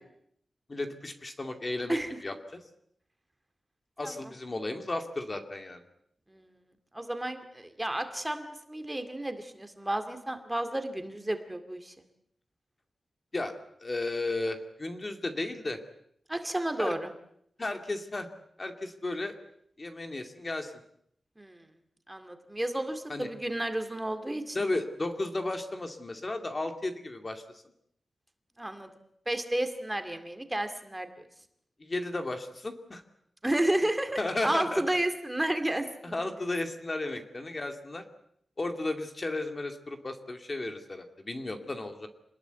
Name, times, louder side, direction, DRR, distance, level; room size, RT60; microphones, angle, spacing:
voice 1, 0.7-2.6 4.0-5.8 13.3-13.5 13.8-15.8 16.8-16.9 17.6-18.3 18.6-19.4 19.8-20.7 23.1-23.3 24.5-27.4 31.8-33.0 34.2-34.8 36.0-38.0 38.6-42.1, left 2 dB, 30° left, 5 dB, 2.4 m, -34 dB
voice 2, 6.9-11.9 16.3-17.1 21.4-21.7 22.1-24.7 28.6-28.9 29.3-31.1 33.4-36.3, right 1 dB, 10° right, 7 dB, 2.3 m, -32 dB
27.0 x 20.5 x 8.2 m, 0.73 s
wide cardioid pair, 135°, 0 cm